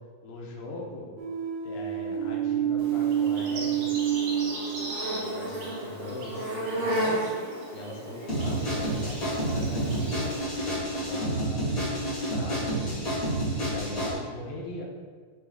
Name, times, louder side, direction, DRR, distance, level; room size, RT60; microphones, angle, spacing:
voice 1, 0.2-1.1 1.6-7.3 7.7-10.3 10.9-13.1 13.6-14.8, left 2 dB, 90° left, -1 dB, 2.8 m, -41 dB
synth flute, 1.2-5.5, right 10 dB, 85° right, 1.5 m, -28 dB
Insect, 2.8-10.4, right 1 dB, 60° right, 3.5 m, -34 dB
sound 1, 8.3-14.1, right 1 dB, 30° left, 1.9 m, -29 dB
9.2 x 3.5 x 3.7 m, 1.5 s
omnidirectional pair, 4.1 m